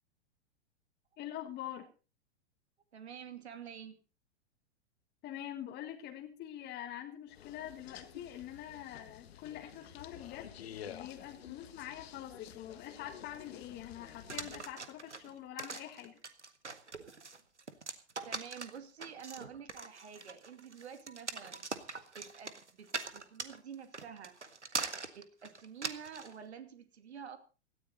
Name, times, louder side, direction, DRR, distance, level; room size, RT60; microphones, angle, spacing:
voice 1, 1.2-1.9 5.2-16.2, left 11 dB, 30° left, 4 dB, 1.8 m, -45 dB
voice 2, 2.9-4.0 8.7-8.9 18.2-21.7 22.2-24.4 25.2-27.4, right 7 dB, 70° right, 8 dB, 2.6 m, -49 dB
sound 1, 7.3-14.7, left 9 dB, 60° left, 1.6 m, -51 dB
sound 2, 14.3-26.3, right 4 dB, 90° right, 1.7 m, -42 dB
17.5 x 14.0 x 4.1 m, 0.33 s
figure-of-eight pair, 105°, 34 cm